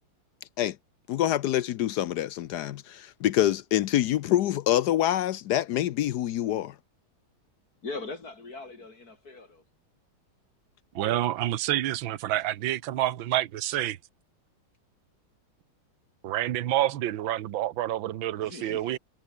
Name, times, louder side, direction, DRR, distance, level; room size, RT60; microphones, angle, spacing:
voice 1, 1.1-6.7, left 12 dB, 70° left, 1.0 m, -26 dB
voice 2, 7.8-9.6 18.3-18.9, left 3 dB, 45° left, 3.3 m, -40 dB
voice 3, 11.0-14.0 16.2-19.0, right 13 dB, 70° right, 1.7 m, -28 dB
omnidirectional pair, 2.3 m